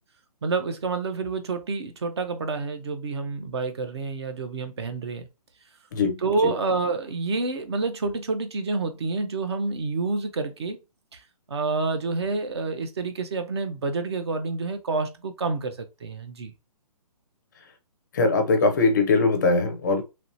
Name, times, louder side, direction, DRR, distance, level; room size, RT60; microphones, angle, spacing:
voice 1, 0.4-5.3 6.2-10.8 11.1-11.2 11.5-16.5, right 3 dB, 45° right, 0.5 m, -28 dB
voice 2, 18.1-20.0, left 3 dB, 30° left, 0.5 m, -21 dB
3.1 x 2.7 x 2.6 m
hypercardioid pair, 165°, 20 cm